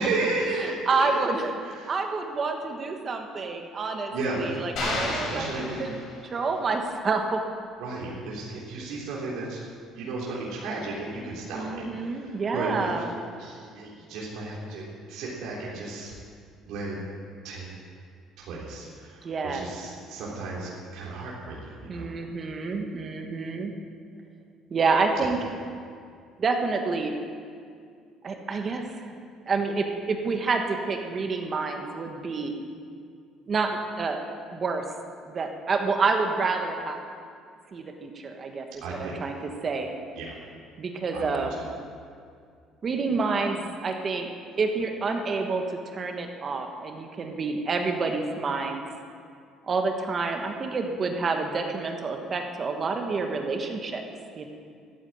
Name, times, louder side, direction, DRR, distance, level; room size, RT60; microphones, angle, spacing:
voice 1, 0.0-1.1 1.6-1.9 4.1-5.8 7.8-9.6 9.9-12.9 13.4-16.1 16.6-17.0 17.4-17.7 18.4-22.1 25.2-25.3 38.8-39.2 40.2-40.3 41.1-41.4, right 3 dB, 70° right, -5 dB, 3.4 m, -34 dB
voice 2, 0.6-1.5 1.9-6.0 6.3-7.4 11.5-13.1 19.2-19.7 21.9-23.7 24.7-25.4 26.4-27.2 28.2-29.1 29.5-32.5 33.5-34.2 34.5-34.8 35.2-37.0 37.7-38.7 39.0-39.4 39.6-39.9 40.8-41.5 42.8-44.3 44.6-45.6 45.9-48.8 49.7-54.0 54.4-54.5, right 4 dB, 30° right, 4 dB, 1.3 m, -28 dB
sound 1, 4.8-6.5, left 2 dB, 55° left, 4.2 m, -32 dB
14.5 x 9.5 x 8.9 m, 2.2 s
cardioid pair, 160°, 0 cm